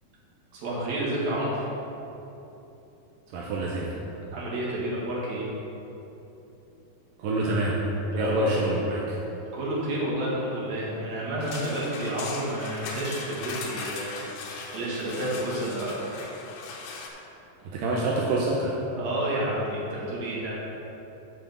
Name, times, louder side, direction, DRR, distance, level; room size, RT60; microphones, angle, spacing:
voice 1, 0.5-1.7 4.3-5.5 8.1-8.5 9.5-16.2 17.1-17.3 18.9-20.5, right 1 dB, 50° right, -6 dB, 2.7 m, -30 dB
voice 2, 3.3-4.0 7.2-7.8 8.2-9.2 17.6-18.8, right 2 dB, 80° right, -4 dB, 2.0 m, -26 dB
sound 1, 11.4-17.1, left 4 dB, 85° left, 3.0 m, -38 dB
8.0 x 5.0 x 6.7 m, 3.0 s
omnidirectional pair, 4.8 m